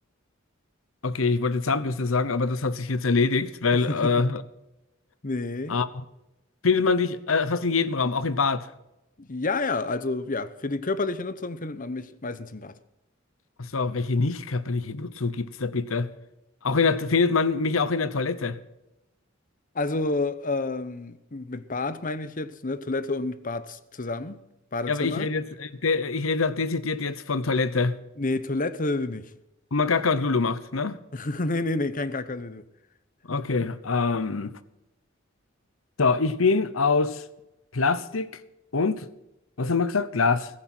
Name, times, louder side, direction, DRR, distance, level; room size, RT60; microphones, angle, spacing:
voice 1, 1.0-4.4 5.7-5.9 6.6-8.7 13.6-16.1 16.6-18.6 24.9-28.0 29.7-31.0 33.3-34.5 36.0-37.2 37.7-38.3 38.7-39.1 39.6-40.5, left 4 dB, 90° left, 0.9 m, -24 dB
voice 2, 3.7-4.1 5.2-5.8 9.2-12.7 19.7-24.4 24.7-25.3 28.2-29.3 31.1-32.6 33.3-33.4, left 2 dB, 40° left, 0.9 m, -29 dB
16.5 x 14.5 x 4.5 m
head